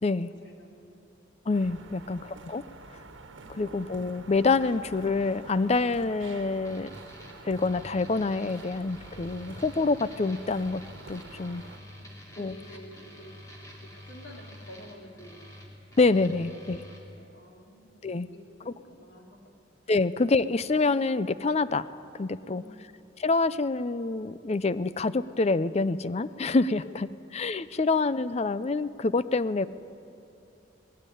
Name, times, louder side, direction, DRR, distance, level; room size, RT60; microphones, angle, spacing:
voice 1, 0.1-1.0 1.7-2.4 11.3-13.4 13.8-15.4 16.5-19.4 22.3-22.8 26.8-27.3, equal, 65° left, 0 dB, 3.6 m, -51 dB
voice 2, 1.5-2.6 3.5-6.9 7.4-10.8 11.1-11.6 12.4-12.5 16.0-16.8 18.0-18.3 18.7-18.8 19.9-21.9 22.1-22.6 23.2-29.7, left 3 dB, 35° left, 15 dB, 0.5 m, -26 dB
sound 1, 1.5-11.8, right 2 dB, 85° right, 1.5 m, -47 dB
sound 2, 6.6-17.0, left 1 dB, 15° left, 3.5 m, -48 dB
19.5 x 18.0 x 9.9 m, 2.9 s
head